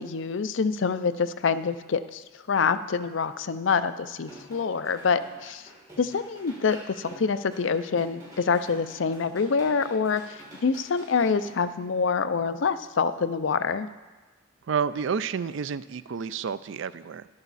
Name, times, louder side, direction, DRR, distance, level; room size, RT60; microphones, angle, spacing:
voice 1, 0.0-5.7 6.0-13.9, left 5 dB, 65° left, 12 dB, 0.5 m, -26 dB
sound 1, 4.2-11.6, right 1 dB, 20° right, 4.6 m, -48 dB
voice 2, 14.7-17.3, right 6 dB, 65° right, 15 dB, 0.4 m, -30 dB
13.5 x 11.0 x 4.1 m, 1.3 s
head